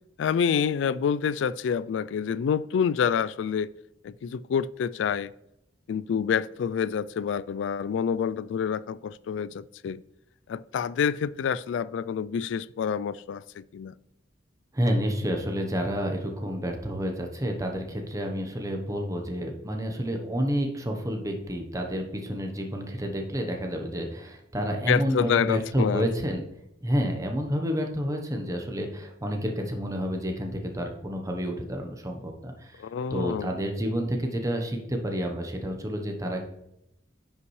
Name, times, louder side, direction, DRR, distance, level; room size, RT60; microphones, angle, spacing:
voice 1, 0.2-3.7 4.0-5.3 5.9-10.0 10.5-13.9 24.9-26.1 32.8-33.5, left 7 dB, 80° left, 0.3 m, -27 dB
voice 2, 14.7-26.4 26.8-32.8 33.1-36.4, equal, 20° right, 0.9 m, -29 dB
9.7 x 5.6 x 3.2 m
head